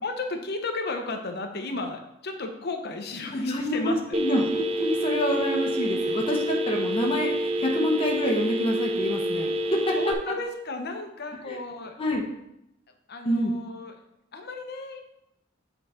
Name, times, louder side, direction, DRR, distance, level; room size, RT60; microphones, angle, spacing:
voice 1, 0.0-4.0 6.0-6.2 10.0-12.0 13.1-14.0 14.3-15.0, left 3 dB, 55° left, 5 dB, 0.9 m, -34 dB
voice 2, 3.3-9.9 11.5-11.6 12.0-12.2 13.2-13.5, left 1 dB, 30° left, -1 dB, 1.0 m, -27 dB
Telephone, 4.1-10.1, right 1 dB, 30° right, 0.4 m, -27 dB
7.9 x 4.0 x 4.3 m, 0.83 s
head